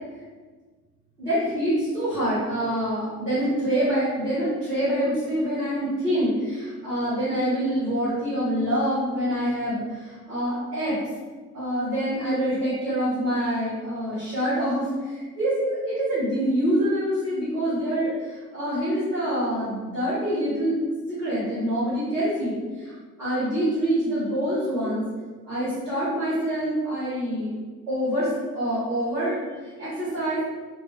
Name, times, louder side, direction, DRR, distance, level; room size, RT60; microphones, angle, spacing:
voice 1, 1.2-11.0 11.5-20.8 21.1-22.9 23.2-25.0 25.5-27.5 27.9-30.4, equal, 90° right, -13 dB, 0.9 m, -26 dB
2.7 x 2.7 x 3.2 m, 1.4 s
figure-of-eight pair, 50°, 46 cm